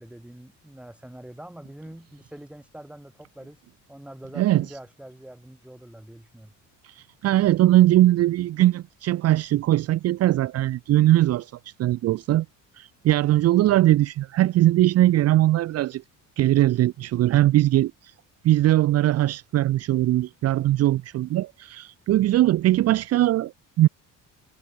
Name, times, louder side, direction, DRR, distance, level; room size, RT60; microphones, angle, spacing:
voice 1, 0.0-3.6 3.9-6.5, right 1 dB, 5° right, 6.3 m, -44 dB
voice 2, 6.8-11.5 11.8-12.4 12.8-16.0 16.4-18.1 18.4-23.9, right 14 dB, 45° right, 0.9 m, -20 dB
cardioid pair, 175°, 33 cm